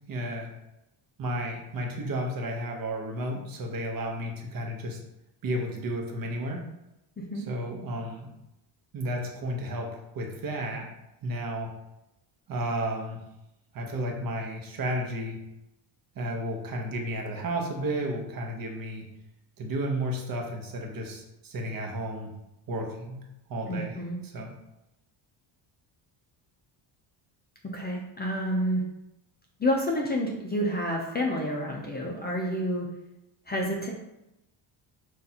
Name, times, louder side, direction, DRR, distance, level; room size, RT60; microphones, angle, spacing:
voice 1, 0.1-0.5 1.2-5.0 5.4-6.6 7.3-8.3 8.9-10.9 11.2-11.7 12.5-13.2 13.7-15.4 16.2-19.0 19.6-22.3 22.7-23.2 23.5-24.0 24.2-24.5, right 1 dB, 45° right, 1 dB, 0.9 m, -32 dB
voice 2, 7.2-7.5 23.7-24.2 27.7-28.8 29.6-32.9 33.5-33.9, equal, 20° left, -1 dB, 0.5 m, -29 dB
6.0 x 2.6 x 2.8 m, 0.90 s
cardioid pair, 120°, 48 cm